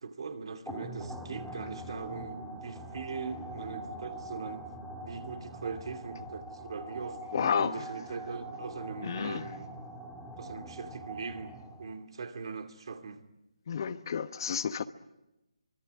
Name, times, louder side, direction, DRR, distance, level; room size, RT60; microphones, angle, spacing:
voice 1, 0.0-4.7 5.0-9.8 10.4-13.2, right 5 dB, 55° right, 2.5 m, -40 dB
sound 1, 0.7-12.0, right 1 dB, ahead, 2.4 m, -43 dB
voice 2, 7.3-7.9 9.0-9.5 13.7-14.8, left 7 dB, 45° left, 1.1 m, -31 dB
25.0 x 21.5 x 9.5 m
figure-of-eight pair, 155°, 3 cm